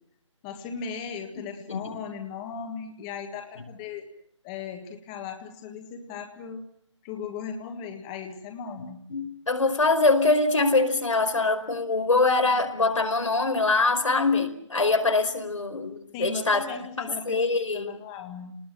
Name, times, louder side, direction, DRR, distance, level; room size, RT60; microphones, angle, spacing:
voice 1, 0.4-4.1 4.4-6.6 7.0-9.0 16.1-18.5, left 6 dB, 10° left, 4 dB, 1.7 m, -37 dB
voice 2, 1.7-2.0 8.8-16.7 17.3-17.9, left 3 dB, 85° left, 6 dB, 4.9 m, -24 dB
29.5 x 20.0 x 7.7 m, 0.70 s
hypercardioid pair, 170°, 16 cm